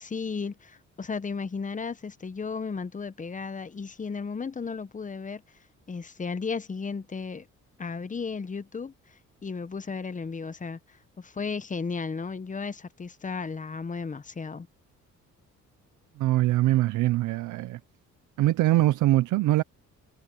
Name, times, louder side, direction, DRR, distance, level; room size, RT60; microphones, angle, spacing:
voice 1, 0.0-5.4 5.9-7.5 7.8-14.7, left 5 dB, 25° left, 1.0 m, -34 dB
voice 2, 16.2-17.8 18.4-19.6, right 16 dB, 85° right, 0.7 m, -23 dB
cardioid pair, 90°, 30 cm